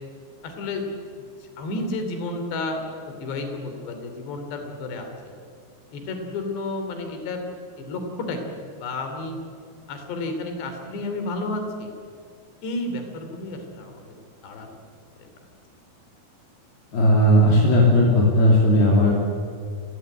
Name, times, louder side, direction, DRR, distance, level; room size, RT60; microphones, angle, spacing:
voice 1, 0.4-0.8 1.6-2.8 3.2-5.1 5.9-7.5 7.8-9.4 9.9-11.9 12.6-14.0 14.4-14.8, left 2 dB, 85° left, 5 dB, 5.1 m, -31 dB
voice 2, 16.9-19.1, equal, 70° left, -2 dB, 4.9 m, -16 dB
29.0 x 17.5 x 9.3 m, 2.2 s
omnidirectional pair, 4.8 m